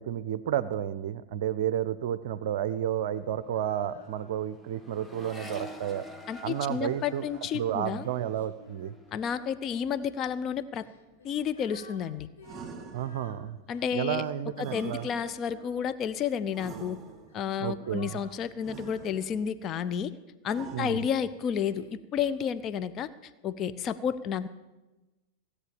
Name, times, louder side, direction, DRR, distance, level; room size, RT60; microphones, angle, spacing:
voice 1, 0.0-6.1 6.4-7.3 7.5-8.9 12.9-13.6 13.9-15.1 17.6-18.2 20.7-21.1, right 10 dB, 55° right, 14 dB, 0.5 m, -31 dB
Accelerating revving vroom, 2.3-2.5 2.8-10.3 10.6-11.3, equal, 5° left, 1.0 m, -49 dB
Female singing, 3.5-4.6 5.1-9.9 10.7-16.3 17.0-20.2 20.8-22.0, left 4 dB, 65° left, 1.5 m, -55 dB
voice 2, 6.3-8.1 9.1-10.8 11.2-12.3 13.7-14.2 14.6-17.0 17.3-20.1 20.4-24.5, left 8 dB, 30° left, 13 dB, 0.6 m, -31 dB
sound 1, 12.4-13.5 14.6-15.6 16.5-17.5 18.6-19.5 20.5-21.4, right 5 dB, 20° right, 2.3 m, -45 dB
16.5 x 8.4 x 6.9 m, 1.1 s
figure-of-eight pair, 90°, 0 cm